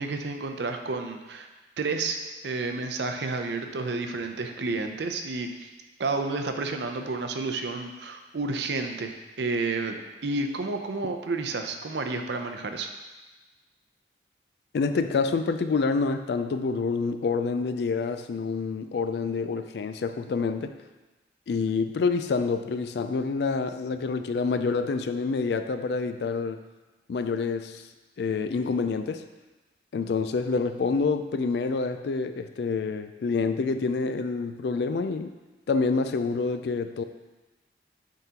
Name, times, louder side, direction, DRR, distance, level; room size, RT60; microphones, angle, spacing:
voice 1, 0.0-1.5 1.8-5.7 6.0-12.9, right 3 dB, 75° right, 6 dB, 0.5 m, -31 dB
voice 2, 14.7-20.8 21.5-26.6 27.1-27.8 28.2-29.2 29.9-35.3 35.7-37.0, left 4 dB, 70° left, 9 dB, 0.3 m, -27 dB
9.0 x 3.7 x 2.9 m, 1.2 s
head